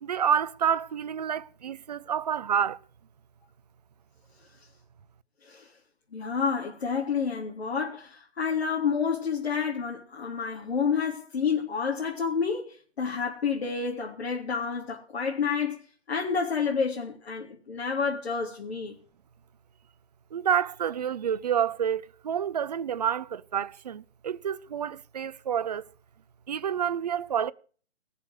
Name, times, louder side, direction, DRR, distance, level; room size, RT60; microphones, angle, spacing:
voice 1, 0.0-2.8 20.3-25.8 26.5-27.5, right 8 dB, 35° right, 0.7 m, -28 dB
voice 2, 5.4-5.7 6.1-18.9, left 6 dB, 65° left, 3.7 m, -29 dB
18.5 x 6.9 x 7.9 m
hypercardioid pair, 160°, 34 cm